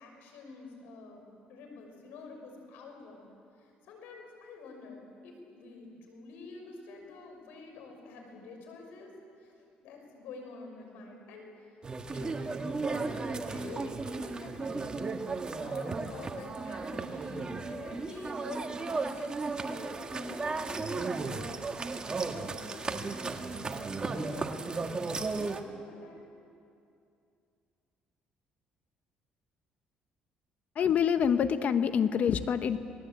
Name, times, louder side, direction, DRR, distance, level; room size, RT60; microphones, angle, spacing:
voice 1, 0.0-3.3 3.6-9.1 9.4-9.5 9.8-11.8 12.1-19.3 19.6-26.3, left 3 dB, 85° left, 3 dB, 6.0 m, -48 dB
sound 1, 11.8-25.6, right 3 dB, 30° right, 1.7 m, -35 dB
voice 2, 30.8-32.8, left 8 dB, 55° left, 10 dB, 1.3 m, -26 dB
28.0 x 19.5 x 8.5 m, 2.5 s
cardioid pair, 100°, 3 cm